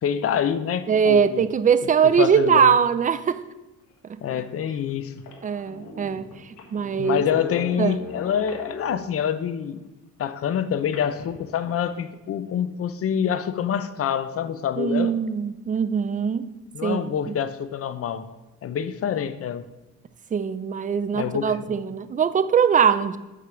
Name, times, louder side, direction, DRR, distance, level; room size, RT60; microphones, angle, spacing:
voice 1, 0.0-1.4 2.0-2.8 4.2-5.1 7.0-9.8 10.2-15.1 16.7-18.3 18.6-19.6 21.1-21.6, left 8 dB, 50° left, 13 dB, 0.6 m, -26 dB
voice 2, 0.9-3.4 5.4-7.2 7.8-8.0 14.8-16.5 16.8-17.1 20.3-23.2, right 7 dB, 25° right, 14 dB, 0.4 m, -21 dB
sound 1, 4.2-4.3 4.9-5.0 5.2-9.2 10.9-12.0, left 4 dB, 70° left, 1.4 m, -39 dB
6.6 x 4.9 x 5.7 m, 1.0 s
cardioid pair, 90°, 30 cm